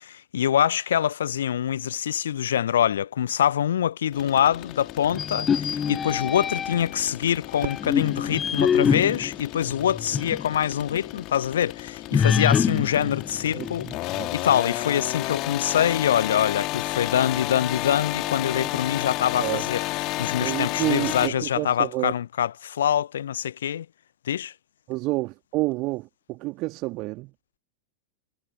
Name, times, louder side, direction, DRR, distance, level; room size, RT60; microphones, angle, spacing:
voice 1, 0.0-13.9 14.3-19.8 20.2-23.9 24.3-24.5, left 10 dB, 65° left, 0.6 m, -25 dB
sound 1, 4.1-21.3, left 20 dB, 40° left, 2.7 m, -32 dB
sound 2, 5.1-7.0 7.6-10.5 10.9-11.0 12.1-14.2, left 7 dB, 20° left, 0.5 m, -25 dB
Fireworks, 7.6-9.8, right 14 dB, 55° right, 2.7 m, -41 dB
voice 2, 13.5-14.3 18.6-18.7 19.4-19.7 20.4-22.1 24.9-27.3, right 22 dB, 40° right, 3.0 m, -29 dB
figure-of-eight pair, 90°, 0 cm